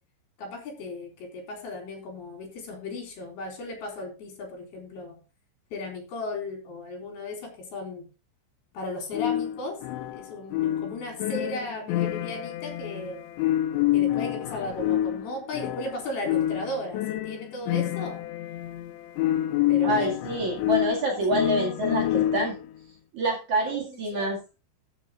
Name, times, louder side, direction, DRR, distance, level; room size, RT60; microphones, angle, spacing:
voice 1, 0.4-5.2 5.7-8.1 8.7-9.8 10.1-13.2 13.9-18.2 19.7-20.1 23.6-24.3, left 2 dB, 55° left, 2 dB, 5.7 m, -36 dB
sound 1, 9.1-22.7, left 13 dB, 85° left, 3.1 m, -28 dB
voice 2, 19.8-22.5 23.1-24.4, right 1 dB, 50° right, -1 dB, 2.9 m, -26 dB
14.0 x 7.3 x 3.7 m, 0.31 s
omnidirectional pair, 5.3 m